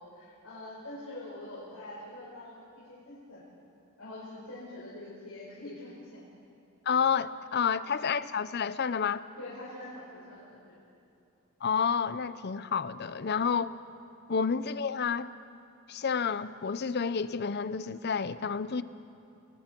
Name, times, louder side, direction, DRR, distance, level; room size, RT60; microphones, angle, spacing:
voice 1, 0.0-3.4 4.0-6.2 7.8-8.0 9.4-10.9, left 1 dB, 85° left, -8 dB, 5.3 m, -45 dB
voice 2, 6.9-9.2 11.6-13.7 14.3-15.3 15.9-18.8, left 6 dB, 50° left, 15 dB, 0.6 m, -29 dB
30.0 x 21.0 x 4.5 m, 2.7 s
head